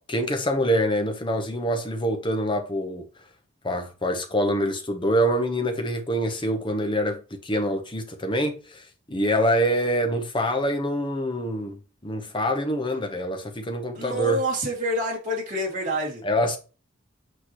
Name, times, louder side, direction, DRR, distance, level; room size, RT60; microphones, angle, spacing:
voice 1, 0.1-3.0 3.6-11.8 12.0-14.4 16.2-16.6, equal, 25° left, 1.0 m, -25 dB
voice 2, 13.9-16.2, equal, 40° right, 2.8 m, -27 dB
8.4 x 4.8 x 3.1 m
head